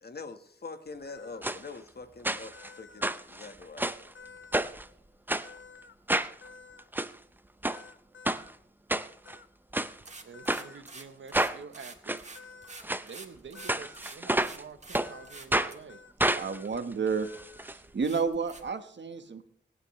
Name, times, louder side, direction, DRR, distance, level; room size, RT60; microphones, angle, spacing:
voice 1, 0.0-4.1, left 4 dB, 55° left, 8 dB, 1.4 m, -44 dB
sound 1, 1.0-1.4 2.5-3.0 4.1-4.7 5.4-5.9 6.4-6.8 7.7-8.5 9.2-9.5 10.3-10.8 12.3-12.8 13.5-14.0 15.0-15.4 15.9-16.1 16.4-16.7 17.2-17.7, left 4 dB, 85° left, 1.0 m, -51 dB
sound 2, 1.4-1.6 2.2-2.7 3.0-4.1 4.5-4.8 5.3-5.5 6.1-6.3 6.8-7.1 7.6-7.8 8.2-8.4 8.9-9.4 9.7-9.9 10.5-10.6 11.3-11.6 12.1-12.2 12.8-13.0 13.7-14.6 14.9-15.1 15.5-15.7 16.2-17.7 18.0-18.1 18.3-18.4, right 1 dB, 10° right, 0.7 m, -29 dB
sound 3, 9.8-15.0 15.2-15.8 16.3-16.4 17.0-17.1 17.4-17.5 18.0-18.6, right 3 dB, 35° right, 2.0 m, -47 dB
voice 2, 10.2-12.2 13.0-16.0, right 5 dB, 85° right, 10 dB, 1.1 m, -48 dB
voice 3, 16.3-17.3 17.6-19.5, right 5 dB, 70° right, 8 dB, 1.4 m, -31 dB
25.5 x 9.5 x 3.2 m, 0.70 s
wide cardioid pair, 85°, 19 cm